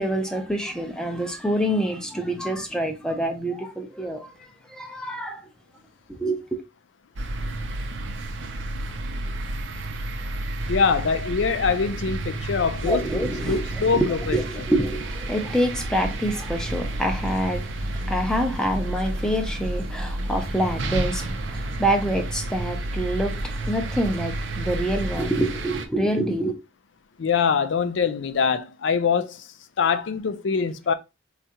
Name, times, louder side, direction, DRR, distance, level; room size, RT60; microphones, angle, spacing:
voice 1, 0.0-4.3 4.7-5.4 6.1-6.6 12.8-26.5, right 1 dB, 5° left, 0.5 m, -26 dB
sound 1, 7.2-25.9, right 1 dB, 75° right, 0.5 m, -31 dB
voice 2, 10.7-14.4 27.2-29.5 29.8-30.9, left 5 dB, 75° left, 0.4 m, -24 dB
4.3 x 2.4 x 2.8 m
head